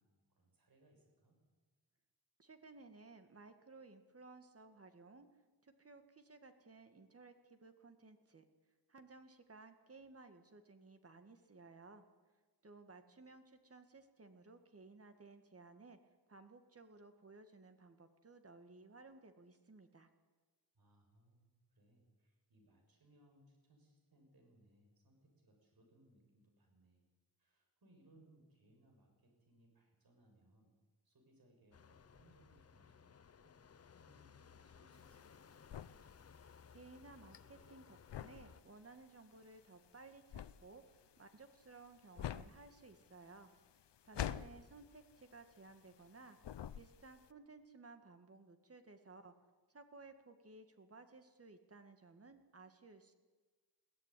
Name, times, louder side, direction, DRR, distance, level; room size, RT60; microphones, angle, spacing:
voice 1, 0.0-1.4 20.7-27.0 27.4-30.7 31.0-33.6 34.0-35.6, right 1 dB, 60° right, 2 dB, 7.1 m, -69 dB
voice 2, 2.4-5.3 5.6-8.5 8.9-12.0 12.6-16.0 16.3-20.1 36.7-40.8 41.2-43.5 44.0-46.4 46.7-49.3 49.7-53.1, right 3 dB, 35° right, 8 dB, 1.9 m, -58 dB
sound 1, 31.7-38.6, left 6 dB, 35° left, 0.7 m, -61 dB
sound 2, 34.9-46.1 46.4-47.3, left 10 dB, 80° left, 0.8 m, -47 dB
22.0 x 16.5 x 10.0 m, 1.3 s
wide cardioid pair, 160°, 41 cm